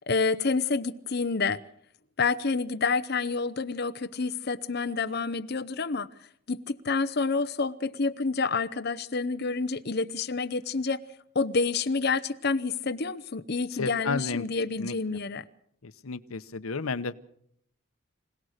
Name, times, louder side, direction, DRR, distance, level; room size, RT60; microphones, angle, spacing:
voice 1, 0.1-1.6 2.2-6.1 6.5-11.0 11.3-15.4, left 4 dB, 50° left, 0.8 m, -28 dB
voice 2, 13.8-14.4 14.8-14.9 15.8-17.2, left 4 dB, 85° left, 0.8 m, -32 dB
25.5 x 17.5 x 6.5 m
head